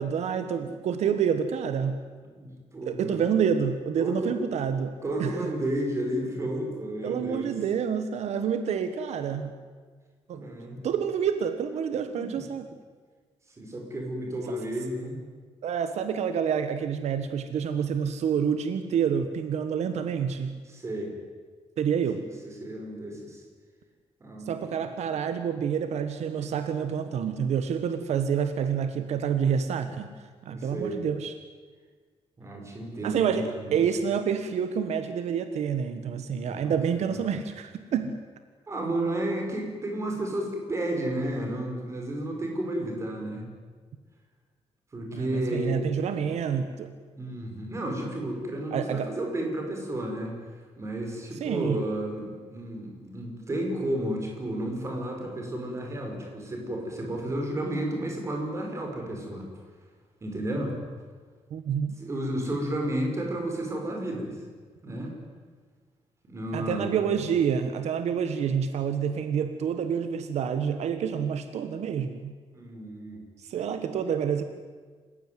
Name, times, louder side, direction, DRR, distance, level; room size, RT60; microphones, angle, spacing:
voice 1, 0.0-2.0 2.8-5.5 7.0-9.5 10.3-10.4 10.8-12.7 15.6-20.6 21.8-22.2 24.4-30.1 30.4-31.3 33.0-38.2 45.1-46.9 48.7-49.1 51.3-51.8 61.5-61.9 66.5-72.3 73.4-74.4, right 7 dB, 80° right, 9 dB, 1.5 m, -28 dB
voice 2, 2.4-3.2 4.0-4.3 5.0-7.5 10.3-10.9 12.1-12.3 13.6-15.2 20.7-21.1 22.2-23.4 24.2-24.8 30.5-31.0 32.4-33.8 36.4-36.6 37.1-37.2 38.7-43.4 44.9-45.8 47.2-50.3 50.8-59.5 60.2-60.7 62.0-64.4 64.8-65.1 66.2-67.0 72.5-73.2, right 1 dB, 25° right, 2 dB, 5.6 m, -32 dB
27.5 x 16.0 x 9.5 m, 1.5 s
wide cardioid pair, 175°, 11 cm